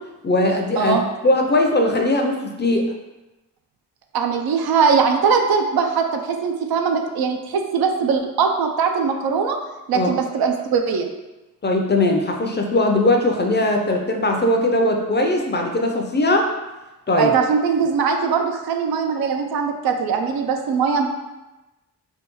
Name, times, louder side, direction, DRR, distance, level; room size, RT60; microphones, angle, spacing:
voice 1, 0.2-2.9 9.9-10.1 11.6-16.5 17.1-17.3, left 1 dB, 30° left, 2 dB, 0.5 m, -19 dB
voice 2, 4.1-9.6 9.9-11.1 17.2-21.1, right 6 dB, 75° right, 4 dB, 0.5 m, -21 dB
3.4 x 2.2 x 3.0 m, 1.1 s
cardioid pair, 60°, 37 cm